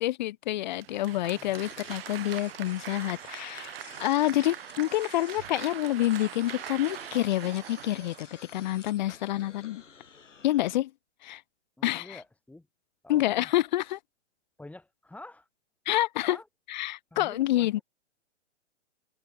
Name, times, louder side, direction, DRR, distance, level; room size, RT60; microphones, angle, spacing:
voice 1, 0.0-8.3 8.5-9.8 10.4-10.9 11.2-11.4 11.8-12.1 13.1-14.0 15.9-16.4 16.7-17.8, left 15 dB, 40° left, 0.5 m, -28 dB
Applause, 0.7-8.8, right 13 dB, 50° right, 2.7 m, -42 dB
sound 1, 1.5-10.7, left 6 dB, 80° left, 2.3 m, -51 dB
voice 2, 11.8-12.7 13.0-13.5 14.6-15.5 16.3-16.5 17.1-17.7, left 2 dB, 5° left, 7.5 m, -48 dB
figure-of-eight pair, 120°, 36 cm